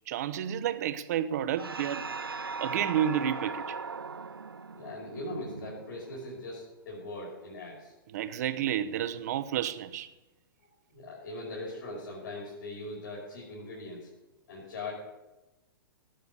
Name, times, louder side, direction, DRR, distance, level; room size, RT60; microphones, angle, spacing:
voice 1, 0.1-2.0 2.6-3.8 8.1-10.1, right 10 dB, 45° right, 1.0 m, -30 dB
sound 1, 1.6-6.4, right 4 dB, 80° right, 0.5 m, -39 dB
voice 2, 4.7-7.9 10.9-14.1 14.5-14.9, left 2 dB, 55° left, 5.3 m, -40 dB
18.0 x 6.7 x 8.3 m
figure-of-eight pair, 110°, 12 cm